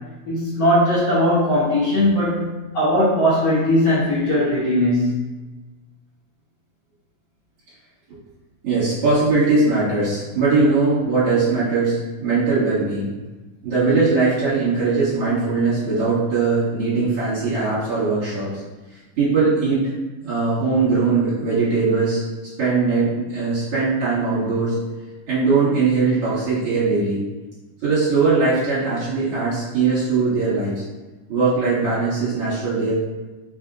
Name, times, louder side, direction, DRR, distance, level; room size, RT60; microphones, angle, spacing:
voice 1, 0.2-2.5 2.7-5.1, left 1 dB, 85° left, -10 dB, 1.0 m, -19 dB
voice 2, 8.6-13.1 13.6-18.5 19.2-19.9 20.2-22.2 22.6-24.8 25.3-27.2 27.8-30.8 31.3-32.9, right 4 dB, 50° right, -12 dB, 2.2 m, -20 dB
5.4 x 2.7 x 2.5 m, 1.2 s
omnidirectional pair, 3.7 m